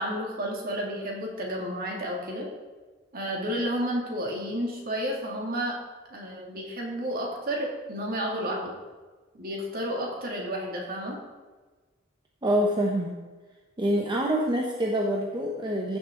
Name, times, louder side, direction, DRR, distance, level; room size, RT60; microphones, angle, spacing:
voice 1, 0.0-2.5 3.1-5.7 6.1-8.7 9.3-11.2, equal, 45° right, -1 dB, 2.4 m, -31 dB
voice 2, 12.4-13.2 13.8-16.0, equal, 25° right, -1 dB, 0.9 m, -26 dB
15.0 x 6.8 x 3.8 m, 1.3 s
head